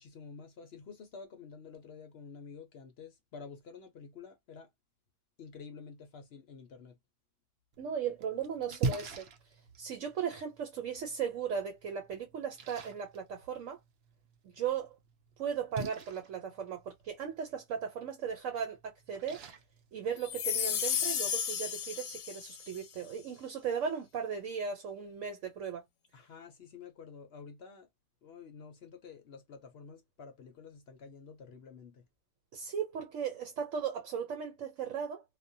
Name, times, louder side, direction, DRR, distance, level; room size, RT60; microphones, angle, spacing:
voice 1, 0.0-4.7 5.4-7.0 26.1-27.9 28.2-32.0, left 5 dB, 60° left, 0.7 m, -50 dB
Splash splatter, 7.7-20.7, right 3 dB, 60° right, 0.7 m, -44 dB
voice 2, 7.8-9.2 9.8-13.8 14.5-15.0 15.4-19.4 19.9-25.8 32.5-35.2, right 7 dB, 75° right, 1.1 m, -37 dB
sound 1, 20.2-22.8, left 8 dB, 85° left, 1.1 m, -33 dB
2.3 x 2.2 x 2.6 m
omnidirectional pair, 1.3 m